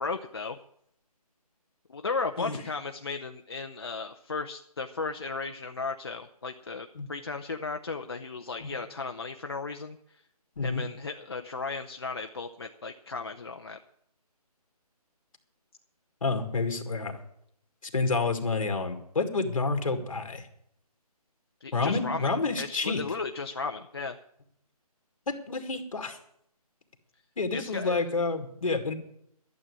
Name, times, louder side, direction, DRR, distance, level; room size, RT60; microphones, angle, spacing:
voice 1, 0.0-0.6 1.9-10.0 10.6-13.8 21.6-24.2 27.5-28.1, left 4 dB, 40° left, 5 dB, 0.6 m, -35 dB
voice 2, 16.2-17.2 17.8-20.4 21.7-23.0 25.3-26.2 27.4-28.9, left 3 dB, 55° left, 6 dB, 2.1 m, -29 dB
12.0 x 7.6 x 9.5 m, 0.71 s
hypercardioid pair, 170°, 20 cm